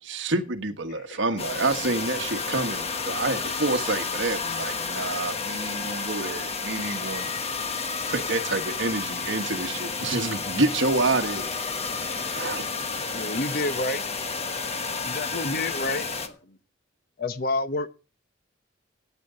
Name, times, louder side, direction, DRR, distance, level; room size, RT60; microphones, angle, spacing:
voice 1, 0.0-7.3 8.1-11.5 12.3-12.9, right 2 dB, 75° right, 1.5 m, -28 dB
sound 1, 1.4-16.3, left 4 dB, 35° left, 1.2 m, -31 dB
voice 2, 13.1-14.0 15.0-16.1 17.2-17.9, left 2 dB, 50° left, 0.9 m, -29 dB
voice 3, 15.9-16.6, right 2 dB, 90° left, 2.0 m, -51 dB
15.0 x 9.3 x 3.9 m
head